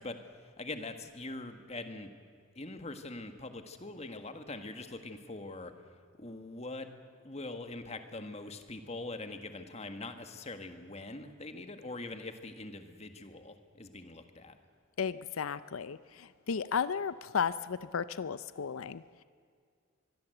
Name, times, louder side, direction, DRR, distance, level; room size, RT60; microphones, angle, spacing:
voice 1, 0.0-2.1 2.6-5.7 6.2-6.9 7.2-14.6, left 2 dB, 30° left, 7 dB, 1.8 m, -43 dB
voice 2, 15.0-19.2, left 6 dB, 90° left, 15 dB, 0.6 m, -34 dB
25.0 x 22.0 x 7.9 m, 2.2 s
head